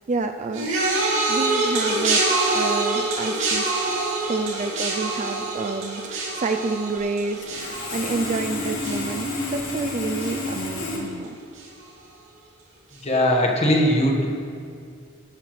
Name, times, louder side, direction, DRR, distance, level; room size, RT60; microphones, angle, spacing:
voice 1, 0.1-0.7 1.3-2.3 2.5-3.7 4.3-11.4, right 3 dB, 35° right, 7 dB, 0.3 m, -29 dB
sound 1, 0.5-9.9 10.2-10.7 11.6-11.7, right 2 dB, 65° right, 2.6 m, -26 dB
Sawing, 7.4-11.0, left 2 dB, 80° left, 3.0 m, -30 dB
voice 2, 13.0-14.3, equal, 30° left, 0 dB, 1.5 m, -19 dB
18.0 x 10.0 x 3.2 m, 2.3 s
head